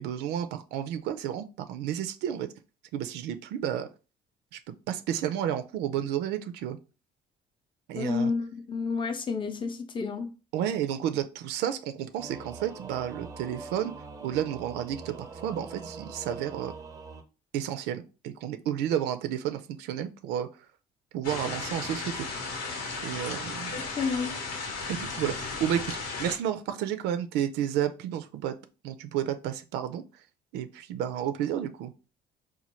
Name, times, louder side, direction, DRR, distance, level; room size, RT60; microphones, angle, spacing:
voice 1, 0.0-2.5 2.9-3.9 4.5-6.8 7.9-8.3 10.5-13.9 14.2-16.7 17.5-20.5 21.1-22.3 23.0-23.8 24.9-25.9 26.2-28.6 28.8-30.0 30.5-31.9, right 10 dB, 90° right, 0.4 m, -31 dB
voice 2, 7.9-10.3 23.7-24.3, left 5 dB, 30° left, 0.6 m, -30 dB
Singing / Musical instrument, 12.2-17.2, right 4 dB, 20° right, 0.4 m, -43 dB
sound 1, 21.2-26.4, left 4 dB, 85° left, 1.1 m, -35 dB
4.2 x 2.2 x 3.0 m
cardioid pair, 110°, 17 cm